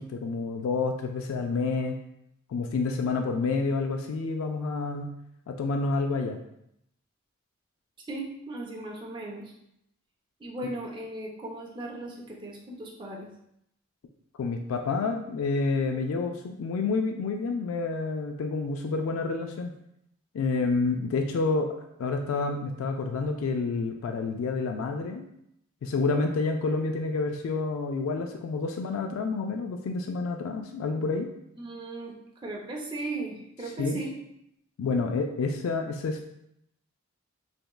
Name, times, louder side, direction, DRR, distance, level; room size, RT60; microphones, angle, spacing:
voice 1, 0.0-2.0 2.5-5.1 5.5-6.4 14.4-19.7 20.3-21.7 22.0-25.3 25.8-31.3 33.8-34.0 34.8-36.2, left 4 dB, 80° left, 4 dB, 0.3 m, -29 dB
voice 2, 8.1-9.5 10.4-13.3 31.6-32.1 32.4-34.2, right 2 dB, 25° right, -3 dB, 0.5 m, -37 dB
3.5 x 2.9 x 2.3 m, 0.77 s
head